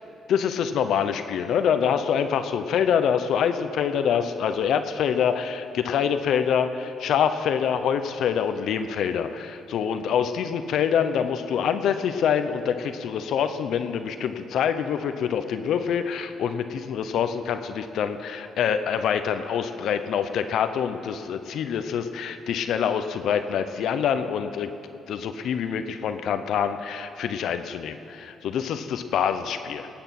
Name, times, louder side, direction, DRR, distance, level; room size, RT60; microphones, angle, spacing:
voice 1, 0.3-24.7 25.1-29.9, left 8 dB, 75° left, 9 dB, 0.8 m, -25 dB
19.5 x 8.8 x 6.0 m, 2.6 s
cardioid pair, 90°, 0 cm